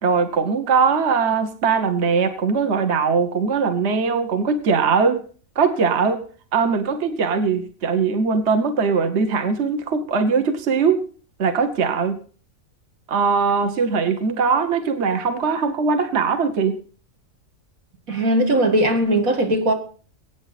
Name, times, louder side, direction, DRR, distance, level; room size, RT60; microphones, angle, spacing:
voice 1, 0.0-5.2 5.5-6.2 6.5-11.0 11.4-12.2 13.1-16.8, right 5 dB, 55° right, 1.4 m, -20 dB
voice 2, 18.1-19.7, right 1 dB, 90° right, 2.6 m, -19 dB
22.5 x 8.9 x 4.1 m
omnidirectional pair, 1.4 m